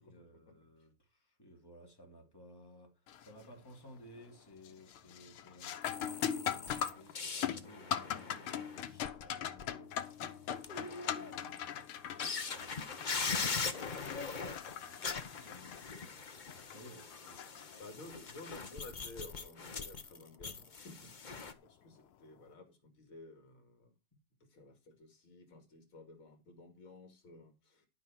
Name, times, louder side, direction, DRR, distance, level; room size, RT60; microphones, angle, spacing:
voice 1, 0.0-10.2 10.7-16.2 16.5-18.1 24.1-24.2, equal, 10° left, 3.1 m, -58 dB
sound 1, 3.1-3.5 3.9-4.3 4.6-18.2 20.7-20.8 21.6-21.8, left 9 dB, 90° left, 1.9 m, -41 dB
sound 2, 5.8-9.6 10.0-10.1 10.5-11.6 12.2-21.5, left 5 dB, 35° left, 0.7 m, -41 dB
voice 2, 17.8-21.1 21.6-24.0 24.4-27.9, left 2 dB, 70° left, 3.1 m, -53 dB
12.5 x 6.3 x 6.0 m
omnidirectional pair, 2.3 m